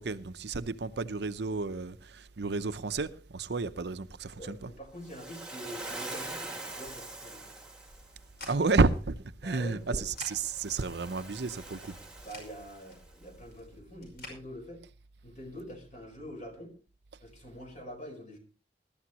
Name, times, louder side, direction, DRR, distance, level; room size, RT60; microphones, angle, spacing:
voice 1, 0.0-4.7 8.5-12.0, right 3 dB, 65° right, 0.7 m, -31 dB
voice 2, 4.4-7.5 9.4-10.1 11.9-14.8 15.2-16.7 17.2-18.4, equal, 45° left, 4.5 m, -45 dB
Waves surf, 5.0-8.2 10.0-13.1, right 2 dB, 5° right, 1.8 m, -44 dB
sound 1, 7.9-14.4, left 2 dB, 60° left, 5.6 m, -51 dB
20.5 x 12.5 x 2.9 m
head